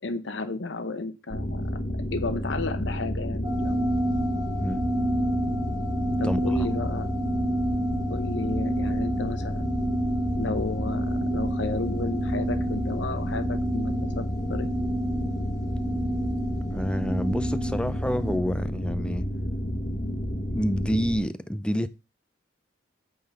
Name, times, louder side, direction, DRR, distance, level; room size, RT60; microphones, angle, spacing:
voice 1, 0.0-1.7 2.1-3.9 6.2-7.1 8.1-9.7 10.4-14.2 14.5-14.7, left 3 dB, 75° left, 0.8 m, -33 dB
sound 1, 1.3-21.2, equal, 35° left, 1.2 m, -30 dB
sound 2, 3.4-18.4, right 1 dB, 20° right, 0.8 m, -30 dB
voice 2, 6.2-6.6 16.7-19.3 20.5-21.9, equal, 5° left, 0.5 m, -28 dB
8.8 x 3.8 x 7.0 m
head